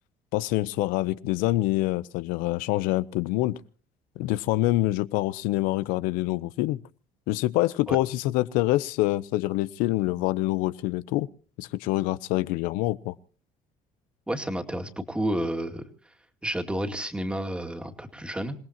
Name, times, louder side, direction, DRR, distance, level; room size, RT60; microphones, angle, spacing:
voice 1, 0.3-3.6 4.2-6.8 7.3-11.3 11.6-13.1, left 17 dB, 85° left, 0.8 m, -26 dB
voice 2, 14.3-15.9 16.4-18.6, right 1 dB, 5° right, 2.4 m, -30 dB
27.5 x 18.0 x 2.9 m
cardioid pair, 120°, 14 cm